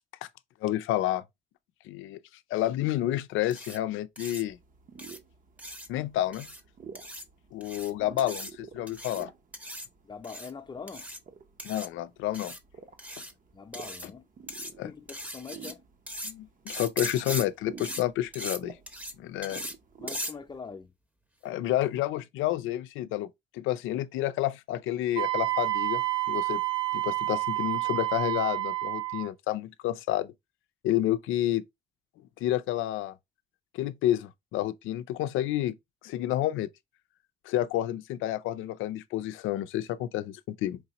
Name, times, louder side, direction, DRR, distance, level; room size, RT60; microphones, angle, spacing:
voice 1, 0.6-1.2 1.9-2.2 2.5-4.6 5.9-6.5 7.5-9.3 11.6-12.5 14.8-14.9 16.2-18.8 19.2-19.6 21.4-23.3 23.5-26.6 26.9-30.3 30.8-31.6 32.4-33.1 33.7-35.7 36.0-36.7 37.5-40.8, left 13 dB, 90° left, 0.4 m, -30 dB
sound 1, 3.5-3.8 4.2-4.4 5.0-5.2 5.6-5.9 6.3-6.6 7.0-7.2 7.6-7.9 8.2-8.5 8.9-9.2 9.5-9.9 10.2-10.5 10.9-11.2 11.6-11.9 12.3-12.6 13.0-13.3 13.7-14.1 14.5-14.7 15.1-15.7 16.1-16.3 16.7-17.4 17.8-18.0 18.3-18.6 18.9-19.1 19.4-19.7 20.1-20.3, equal, 5° right, 0.8 m, -39 dB
sound 2, 4.5-20.6, right 6 dB, 40° right, 0.8 m, -50 dB
voice 2, 10.0-11.1 13.5-14.3 14.8-15.8 20.0-20.9, left 5 dB, 20° left, 0.6 m, -43 dB
Wind instrument woodwind instrument, 25.2-29.3, right 18 dB, 80° right, 0.5 m, -29 dB
4.6 x 2.9 x 2.9 m
cardioid pair, 90°, 20 cm